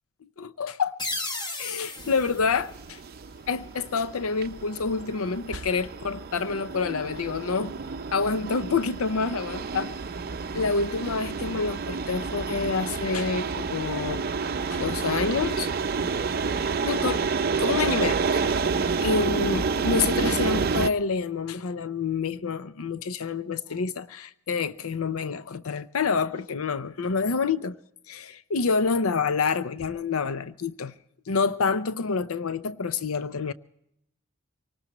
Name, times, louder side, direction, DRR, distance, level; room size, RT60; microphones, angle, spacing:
voice 1, 0.4-1.0 1.6-3.0 3.5-7.7 8.1-9.9 10.5-14.2 14.7-15.7 16.2-16.4 16.8-17.3 17.6-27.8 28.1-30.9 31.3-33.5, left 4 dB, 80° left, 0.6 m, -28 dB
sound 1, 1.0-3.6, left 2 dB, 20° left, 1.0 m, -36 dB
sound 2, 2.0-20.9, right 4 dB, 45° right, 0.5 m, -29 dB
24.5 x 19.0 x 3.0 m
head